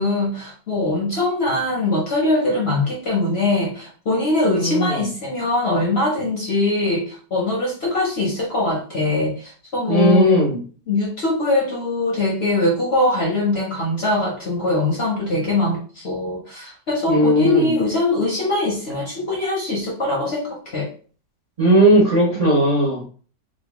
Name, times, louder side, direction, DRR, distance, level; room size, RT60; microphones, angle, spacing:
voice 1, 0.0-10.4 10.9-20.9, left 2 dB, 55° left, -2 dB, 0.7 m, -22 dB
voice 2, 4.5-5.0 9.9-10.6 17.1-17.7 21.6-23.1, right 1 dB, 65° right, -4 dB, 0.3 m, -17 dB
4.1 x 2.1 x 2.9 m, 0.41 s
omnidirectional pair, 2.0 m